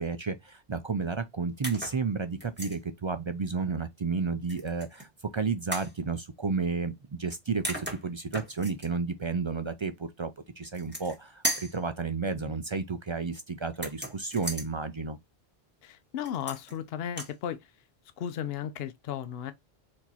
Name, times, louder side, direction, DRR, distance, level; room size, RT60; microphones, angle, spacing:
voice 1, 0.0-10.3 10.6-15.2, right 4 dB, 45° right, 0.4 m, -32 dB
sound 1, 1.6-2.0 2.4-2.8 4.5-5.1 5.7-5.9 7.3-7.4 7.6-8.9 10.6-11.2 11.4-11.8 13.7-14.7 16.2-16.8 17.1-17.3, right 1 dB, 10° right, 1.4 m, -36 dB
voice 2, 15.8-17.6 18.2-19.5, left 9 dB, 75° left, 0.8 m, -35 dB
4.5 x 2.9 x 4.0 m
omnidirectional pair, 1.1 m